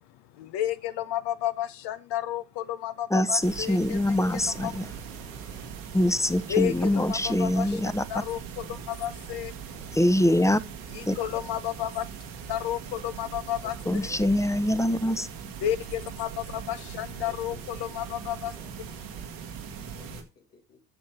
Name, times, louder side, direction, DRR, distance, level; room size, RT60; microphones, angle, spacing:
voice 1, 0.3-4.7 6.5-7.8 8.1-9.6 10.9-12.0 12.5-13.7 15.6-18.5, left 12 dB, 60° left, 0.9 m, -32 dB
voice 2, 3.1-4.9 5.2-5.7 5.9-8.0 9.9-10.6 11.1-11.2 13.9-15.3, left 1 dB, 5° left, 0.8 m, -24 dB
sound 1, 3.4-20.2, right 7 dB, 75° right, 1.7 m, -40 dB
voice 3, 13.6-15.2 17.2-17.8 18.1-19.3 19.9-20.8, left 5 dB, 90° left, 2.6 m, -55 dB
8.0 x 6.9 x 5.6 m
hypercardioid pair, 50°, 46 cm